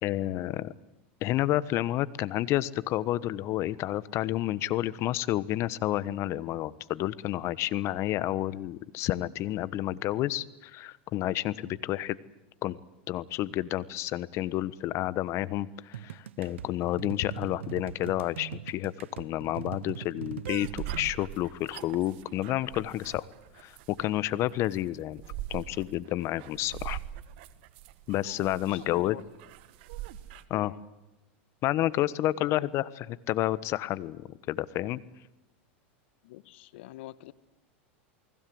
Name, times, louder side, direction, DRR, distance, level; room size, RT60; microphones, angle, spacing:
voice 1, 0.0-0.7 1.2-12.2 12.6-12.8 13.1-23.3 23.6-25.2 25.5-27.0 28.1-29.2 30.5-30.7 31.6-35.0, left 14 dB, 45° left, 18 dB, 1.2 m, -30 dB
sound 1, 15.9-21.1, right 11 dB, 90° right, 0.9 m, -41 dB
sound 2, 20.5-30.4, right 13 dB, 65° right, 1.8 m, -42 dB
voice 2, 28.6-29.2 30.5-30.8 32.5-32.7 36.2-37.3, left 16 dB, 70° left, 17 dB, 1.3 m, -45 dB
29.0 x 20.0 x 7.9 m, 0.98 s
hypercardioid pair, 110°, 6 cm